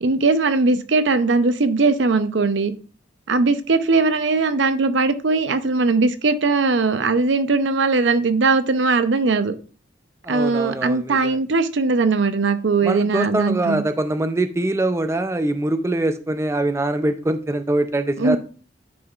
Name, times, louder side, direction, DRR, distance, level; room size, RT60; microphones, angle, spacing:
voice 1, 0.0-2.7 3.3-9.5 10.3-13.8 18.2-18.4, right 3 dB, 75° right, 0.6 m, -19 dB
voice 2, 10.2-11.4 12.8-18.4, right 1 dB, 15° right, 0.4 m, -23 dB
9.4 x 5.4 x 2.4 m
head